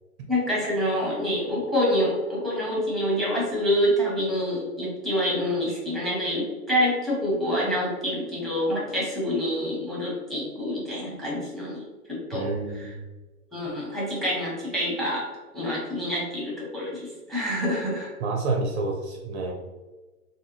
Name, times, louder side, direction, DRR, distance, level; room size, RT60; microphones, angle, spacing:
voice 1, 0.3-11.8 12.1-12.5 12.8-12.9 13.5-15.3 15.5-18.1, equal, ahead, -6 dB, 0.8 m, -27 dB
voice 2, 12.3-13.0 18.2-19.5, right 3 dB, 50° right, 2 dB, 0.6 m, -28 dB
3.2 x 2.1 x 3.1 m, 1.2 s
hypercardioid pair, 115°, 45 cm